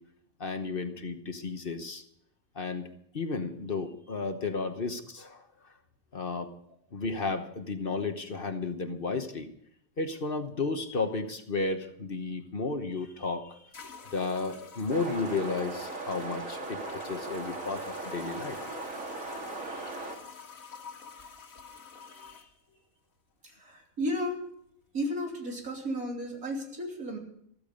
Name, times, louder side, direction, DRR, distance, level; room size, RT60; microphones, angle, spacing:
voice 1, 0.4-2.0 2.5-2.9 3.1-5.7 6.1-6.5 6.9-9.5 10.0-13.6 14.1-18.6 19.7-19.9 22.3-22.5, left 3 dB, 45° left, 7 dB, 1.2 m, -33 dB
sound 1, 12.9-13.0 13.7-22.5, left 5 dB, 80° left, 2.2 m, -48 dB
sound 2, 14.9-20.2, right 3 dB, 70° right, 2.6 m, -38 dB
voice 2, 23.4-24.5 24.9-27.2, equal, 90° right, 1 dB, 3.6 m, -34 dB
14.5 x 14.0 x 5.2 m, 0.69 s
omnidirectional pair, 1.4 m